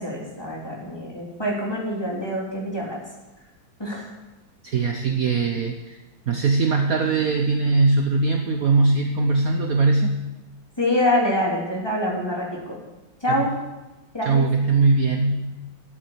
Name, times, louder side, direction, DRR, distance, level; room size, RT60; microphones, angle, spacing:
voice 1, 0.0-3.0 3.8-4.1 10.8-12.8 13.2-13.5 14.1-14.4, left 1 dB, 10° left, -4 dB, 3.2 m, -25 dB
voice 2, 4.6-6.0 6.3-10.2 13.3-13.5 14.2-15.5, right 3 dB, 55° right, 4 dB, 1.1 m, -21 dB
12.0 x 7.5 x 8.5 m, 1.1 s
omnidirectional pair, 2.1 m